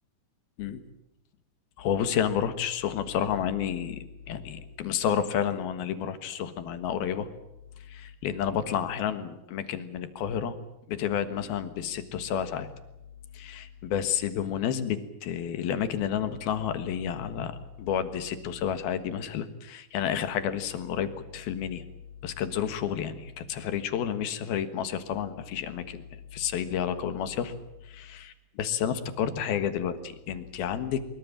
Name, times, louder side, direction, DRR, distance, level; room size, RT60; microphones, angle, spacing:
voice 1, 1.8-7.3 7.9-10.6 10.9-12.7 13.3-21.8 22.2-26.0 26.3-27.5 27.8-31.1, left 9 dB, 65° left, 10 dB, 3.1 m, -30 dB
23.5 x 23.0 x 7.4 m, 0.90 s
omnidirectional pair, 5.0 m